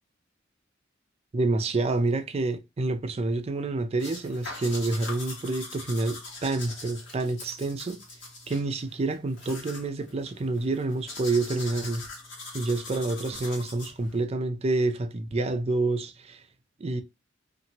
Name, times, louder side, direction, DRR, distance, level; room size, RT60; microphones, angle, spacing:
voice 1, 1.3-8.0 8.5-12.1 12.5-16.4 16.8-17.0, right 2 dB, 35° right, 0.4 m, -28 dB
sound 1, 4.0-14.2, left 3 dB, 70° left, 1.5 m, -42 dB
2.8 x 2.5 x 2.9 m
head